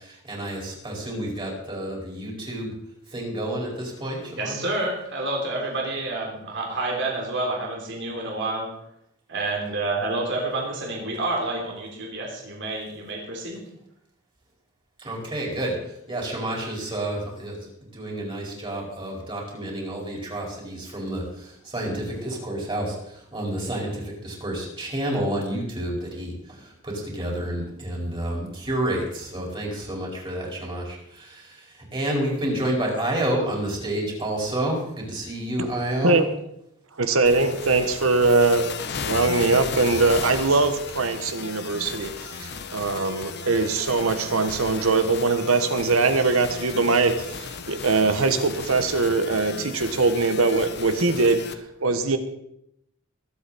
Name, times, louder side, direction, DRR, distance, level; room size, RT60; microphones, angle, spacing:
voice 1, 0.3-2.7 3.1-4.7 15.0-15.7 16.1-17.6 17.9-21.2 21.7-22.9 23.3-26.3 26.8-31.4 31.9-36.2, right 1 dB, 25° right, -2 dB, 4.7 m, -29 dB
voice 2, 4.4-8.7 9.3-13.7, right 2 dB, 60° right, -1 dB, 3.4 m, -29 dB
voice 3, 37.0-38.8 39.1-52.2, right 3 dB, 85° right, 9 dB, 1.3 m, -22 dB
sound 1, 37.3-51.5, left 5 dB, 55° left, 0.9 m, -35 dB
22.5 x 8.3 x 4.2 m, 0.77 s
head